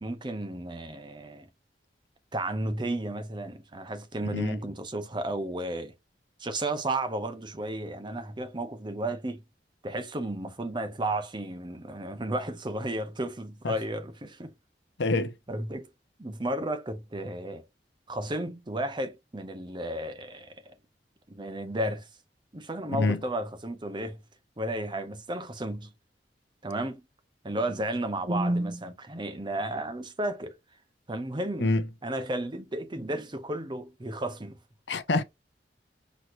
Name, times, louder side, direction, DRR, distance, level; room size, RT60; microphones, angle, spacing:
voice 1, 0.0-1.5 2.3-5.9 6.4-9.4 9.8-14.5 15.0-15.9 16.2-17.7 18.1-20.7 21.3-22.1 22.5-24.2 24.6-25.9 26.6-27.0 27.4-30.6 31.1-31.7 32.0-34.6, right 1 dB, 25° right, 0.8 m, -33 dB
voice 2, 4.2-4.6 13.6-13.8 15.0-15.3 22.9-23.2 31.6-31.9 34.9-35.2, left 2 dB, 85° left, 0.7 m, -26 dB
6.0 x 3.1 x 2.6 m
head